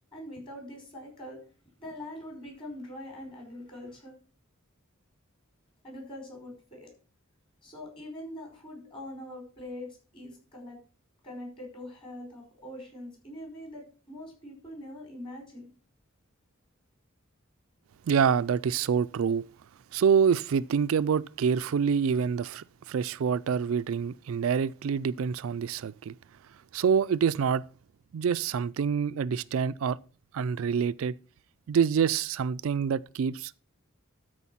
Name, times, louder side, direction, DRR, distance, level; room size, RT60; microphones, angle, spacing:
voice 1, 0.1-1.4 1.8-4.1 5.8-6.9 7.6-10.8 11.2-15.7, left 1 dB, 25° left, 5.0 m, -43 dB
voice 2, 18.1-19.4 19.9-26.1 26.7-27.6 28.1-30.0 30.3-31.1 31.7-33.6, right 7 dB, 75° right, 0.4 m, -26 dB
12.5 x 4.8 x 5.6 m
head